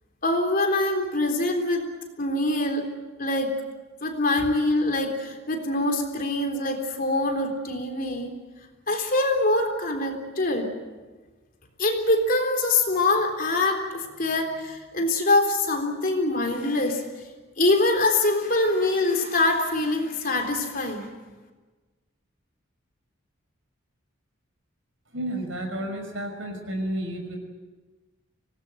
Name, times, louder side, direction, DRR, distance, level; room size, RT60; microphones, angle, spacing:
voice 1, 0.2-1.9 2.2-2.9 3.2-3.5 4.0-8.3 8.9-10.7 11.8-17.0 17.6-21.1, left 2 dB, 45° left, 3 dB, 3.7 m, -24 dB
voice 2, 25.1-27.4, right 1 dB, 70° right, 5 dB, 5.8 m, -31 dB
25.0 x 19.0 x 9.2 m, 1.3 s
head